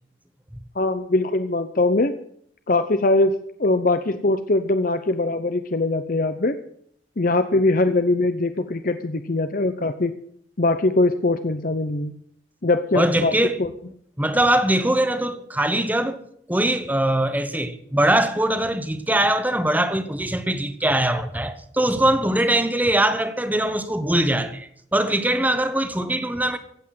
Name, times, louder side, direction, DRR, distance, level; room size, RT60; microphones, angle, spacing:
voice 1, 0.7-2.1 2.7-6.5 7.2-10.1 10.6-12.1 12.6-13.3 13.6-13.7, left 2 dB, 50° left, 0.8 m, -21 dB
voice 2, 12.9-13.6 14.2-16.2 16.5-26.6, right 1 dB, 10° right, 1.3 m, -22 dB
16.0 x 8.3 x 9.4 m
head